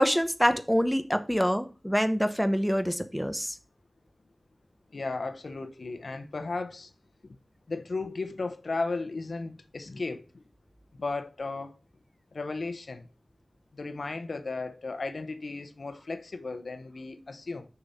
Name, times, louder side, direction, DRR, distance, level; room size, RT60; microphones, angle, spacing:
voice 1, 0.0-3.6, equal, ahead, 0.9 m, -25 dB
voice 2, 4.9-6.9 7.2-7.3 7.7-10.2 11.0-11.7 12.3-13.1 13.7-17.7, left 3 dB, 80° left, 0.8 m, -35 dB
6.7 x 5.6 x 4.2 m
wide cardioid pair, 70°, 0 cm